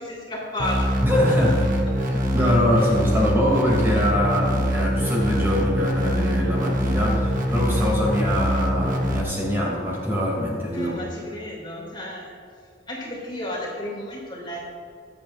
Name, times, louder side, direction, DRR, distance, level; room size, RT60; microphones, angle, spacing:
voice 1, 0.0-1.0 2.7-2.9 10.7-12.3 12.9-14.6, left 1 dB, 25° left, -4 dB, 2.9 m, -33 dB
sound 1, 0.6-9.2, equal, 45° right, 1.3 m, -24 dB
voice 2, 1.0-1.8 2.1-10.9, left 1 dB, 10° right, -5 dB, 2.9 m, -23 dB
22.5 x 8.6 x 2.6 m, 2.5 s
head